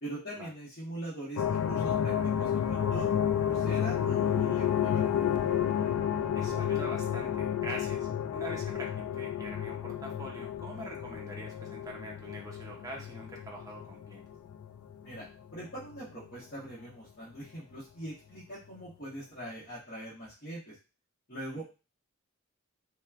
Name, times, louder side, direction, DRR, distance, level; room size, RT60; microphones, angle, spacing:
voice 1, 0.0-3.1 3.4-5.0 15.0-15.2 15.5-20.7 21.3-21.6, right 1 dB, 45° left, -11 dB, 1.0 m, -42 dB
sound 1, 1.4-15.2 15.7-16.2, left 9 dB, 85° left, 0.3 m, -31 dB
voice 2, 6.3-14.2, right 1 dB, 15° right, -2 dB, 0.5 m, -44 dB
2.9 x 2.1 x 2.3 m, 0.31 s
head